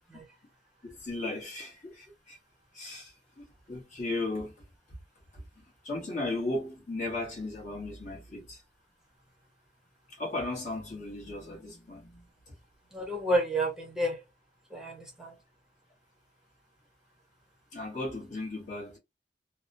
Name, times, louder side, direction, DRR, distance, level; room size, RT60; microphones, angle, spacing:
voice 1, 0.8-2.4 2.7-4.5 5.3-5.4 5.8-8.6 10.1-12.6 17.7-19.0, left 2 dB, 40° left, 1.0 m, -36 dB
voice 2, 12.9-14.2 14.7-15.4, right 1 dB, 5° right, 0.7 m, -30 dB
2.8 x 2.0 x 2.6 m
head